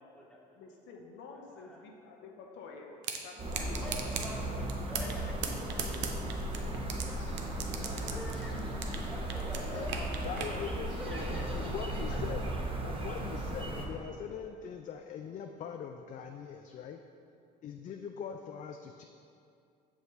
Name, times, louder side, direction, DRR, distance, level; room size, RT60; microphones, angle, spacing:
voice 1, 0.0-0.4 1.6-1.8 3.5-6.1 7.0-7.3 7.6-8.5 9.1-11.5 14.3-14.4, equal, 5° left, -3 dB, 1.2 m, -46 dB
voice 2, 0.5-3.9 4.8-4.9 5.1-5.8 6.6-7.1 7.7-8.2 8.5-8.8 11.2-12.5 12.8-13.2, left 4 dB, 60° left, 1 dB, 0.8 m, -50 dB
sound 1, 3.0-3.2 3.5-4.3 4.7-5.2 5.4-7.0 7.4-9.0 9.3-10.5, right 8 dB, 60° right, 0.6 m, -36 dB
sound 2, 3.4-13.9, right 1 dB, 25° right, 0.9 m, -36 dB
sound 3, 6.7-11.7, left 2 dB, 80° left, 1.2 m, -52 dB
voice 3, 10.2-17.0 17.6-19.0, left 7 dB, 35° left, 4 dB, 0.4 m, -42 dB
6.3 x 4.9 x 3.1 m, 2.5 s
hypercardioid pair, 65°, 21 cm